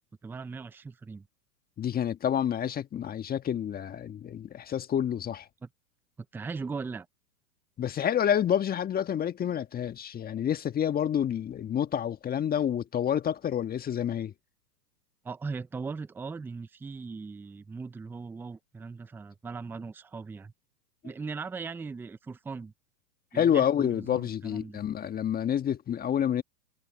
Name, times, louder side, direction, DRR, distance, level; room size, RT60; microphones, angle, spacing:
voice 1, 0.2-1.3 5.6-5.7 6.3-7.1 15.2-20.5 21.0-22.7 23.3-24.8, right 4 dB, 5° right, 0.6 m, -39 dB
voice 2, 1.8-5.5 7.8-14.3 23.3-26.4, left 9 dB, 20° left, 1.6 m, -28 dB
hypercardioid pair, 115°, 50 cm